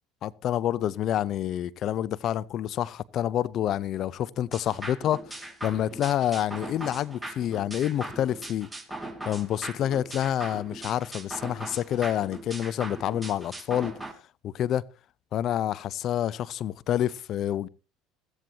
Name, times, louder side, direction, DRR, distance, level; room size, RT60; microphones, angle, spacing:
voice 1, 0.2-8.7 9.3-13.9 14.4-14.8 15.3-17.7, left 11 dB, 55° left, 0.5 m, -28 dB
sound 1, 4.5-14.1, right 2 dB, 10° right, 2.1 m, -40 dB
15.0 x 14.5 x 2.8 m
hypercardioid pair, 75°, 0 cm